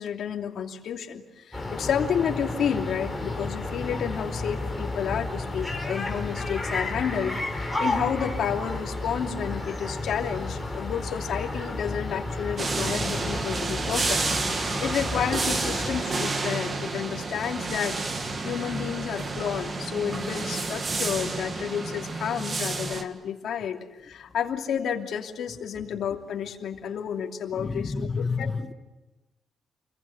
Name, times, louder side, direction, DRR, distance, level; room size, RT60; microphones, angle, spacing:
voice 1, 0.0-14.2 14.5-18.0 18.4-27.9 28.4-28.5, left 8 dB, 65° left, 2 dB, 2.8 m, -31 dB
sound 1, 1.5-16.0, left 2 dB, ahead, 4.6 m, -32 dB
sound 2, 12.6-23.0, right 3 dB, 30° right, 1.8 m, -30 dB
voice 2, 27.5-28.7, left 4 dB, 20° left, 8 dB, 1.3 m, -30 dB
29.0 x 22.0 x 8.1 m, 1.1 s
wide cardioid pair, 160°, 0 cm